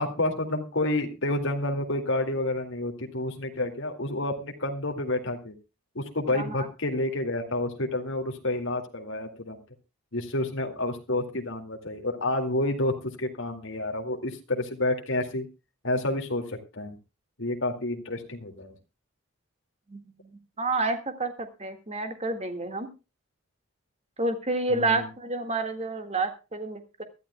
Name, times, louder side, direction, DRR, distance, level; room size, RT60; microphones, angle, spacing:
voice 1, 0.0-5.5 5.9-9.6 10.1-15.5 15.8-16.9 17.4-18.7 24.7-25.0, left 2 dB, 60° left, 4 dB, 2.2 m, -29 dB
voice 2, 6.3-6.7 19.9-22.9 24.2-27.0, right 3 dB, 30° right, 7 dB, 1.8 m, -29 dB
23.0 x 12.5 x 2.2 m, 0.29 s
head